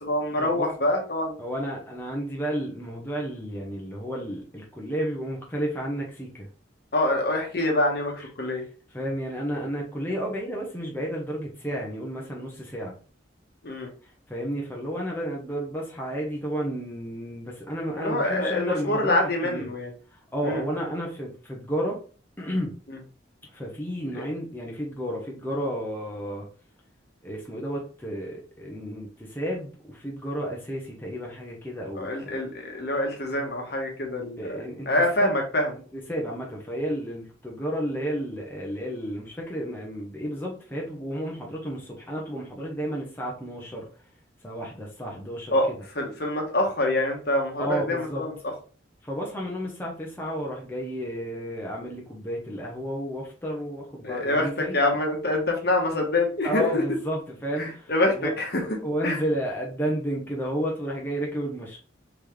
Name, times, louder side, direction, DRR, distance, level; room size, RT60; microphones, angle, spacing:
voice 1, 0.0-1.4 6.9-8.6 13.6-13.9 18.0-19.9 20.4-20.6 24.1-24.2 31.9-34.6 34.9-35.7 45.5-45.7 45.9-48.3 54.0-56.8 57.6-58.6 59.0-59.2, left 1 dB, 55° left, 1 dB, 1.1 m, -25 dB
voice 2, 1.4-6.5 8.9-12.9 14.3-19.2 19.4-19.7 20.3-22.0 22.4-22.7 23.5-26.5 27.2-32.4 34.4-34.9 35.2-35.3 35.9-43.9 44.4-45.5 47.6-48.3 49.0-54.8 56.4-57.9 58.2-58.3 58.8-61.8, equal, 10° left, -2 dB, 0.8 m, -32 dB
4.0 x 3.4 x 3.2 m, 0.40 s
head